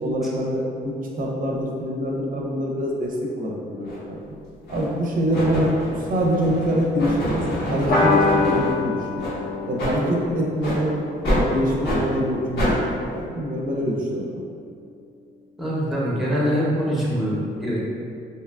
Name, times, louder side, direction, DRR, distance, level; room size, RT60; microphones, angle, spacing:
voice 1, 0.0-4.2 4.7-9.2 9.7-10.9 11.3-12.8 13.1-14.3, equal, 45° right, -1 dB, 0.5 m, -25 dB
sound 1, 3.8-4.0 4.7-5.0 5.3-8.7 9.2-9.3 9.8-9.9 10.6-10.8 11.2-11.4 11.8-12.0 12.6-12.7, equal, 80° left, 1.1 m, -26 dB
sound 2, 7.9-12.8, left 3 dB, 50° left, 0.6 m, -26 dB
voice 2, 15.6-17.9, equal, ahead, -6 dB, 0.6 m, -24 dB
2.7 x 2.3 x 2.3 m, 2.4 s
cardioid pair, 90°, 20 cm